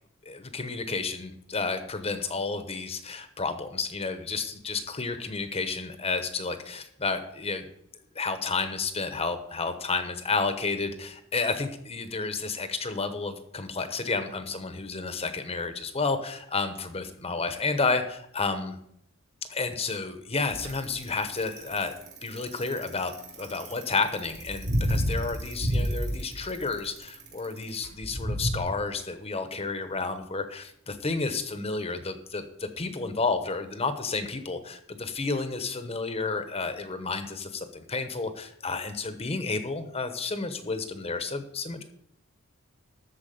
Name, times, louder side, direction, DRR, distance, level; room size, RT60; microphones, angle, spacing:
voice 1, 0.2-7.7 8.1-18.8 19.5-21.9 22.2-41.8, left 4 dB, 25° left, 9 dB, 1.0 m, -31 dB
Bicycle, 20.5-28.6, equal, 70° right, 3.4 m, -30 dB
13.5 x 4.7 x 7.7 m, 0.71 s
head